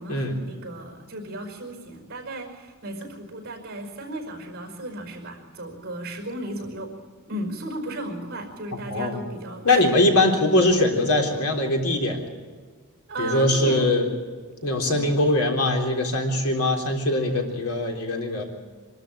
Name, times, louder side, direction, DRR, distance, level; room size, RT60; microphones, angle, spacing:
voice 1, 0.0-6.9 7.3-9.8 10.3-10.4 13.1-14.0 14.9-15.1, right 1 dB, 45° right, 4 dB, 5.1 m, -35 dB
voice 2, 9.6-12.2 13.2-14.0 14.6-18.4, left 1 dB, 75° left, 2 dB, 3.7 m, -22 dB
25.0 x 13.0 x 8.6 m, 1.5 s
head